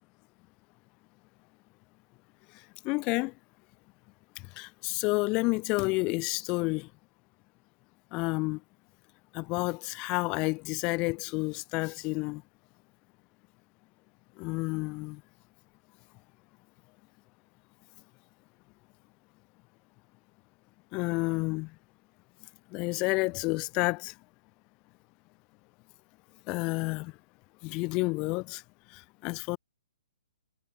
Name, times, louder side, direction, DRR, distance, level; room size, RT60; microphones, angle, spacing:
voice 1, 2.8-3.3 4.4-6.9 8.1-8.6 9.3-12.4 14.4-15.2 20.9-21.7 22.7-24.1 26.5-27.1 27.6-28.6 28.9-29.6, left 26 dB, 25° left, 0.7 m, -30 dB
hypercardioid pair, 155°, 3 cm